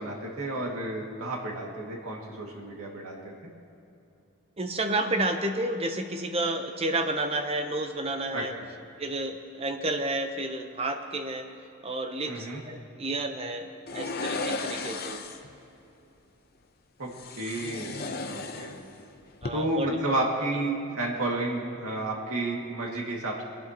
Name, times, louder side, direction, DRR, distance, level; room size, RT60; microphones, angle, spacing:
voice 1, 0.0-3.5 8.3-8.7 12.3-12.6 17.0-17.1 17.4-18.7 19.5-23.4, right 2 dB, 85° right, -1 dB, 2.2 m, -31 dB
voice 2, 4.6-8.5 9.0-11.5 11.8-15.2 19.4-20.6, right 2 dB, 30° right, 6 dB, 0.8 m, -31 dB
sound 1, 13.9-15.5 17.1-19.0 19.3-19.5, left 3 dB, 45° left, 0.7 m, -35 dB
22.5 x 11.5 x 3.0 m, 2.8 s
head